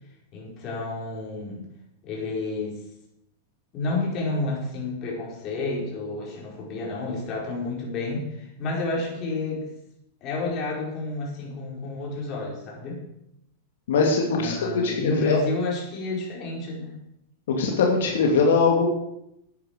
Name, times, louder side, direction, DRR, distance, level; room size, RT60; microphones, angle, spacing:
voice 1, 0.3-1.7 2.0-2.8 3.7-9.7 10.2-13.0 14.4-16.9, left 2 dB, 35° left, -2 dB, 5.0 m, -30 dB
voice 2, 13.9-15.4 17.5-18.9, left 4 dB, 80° left, 1 dB, 2.5 m, -21 dB
10.5 x 9.7 x 6.8 m, 0.81 s
supercardioid pair, 140°, 0 cm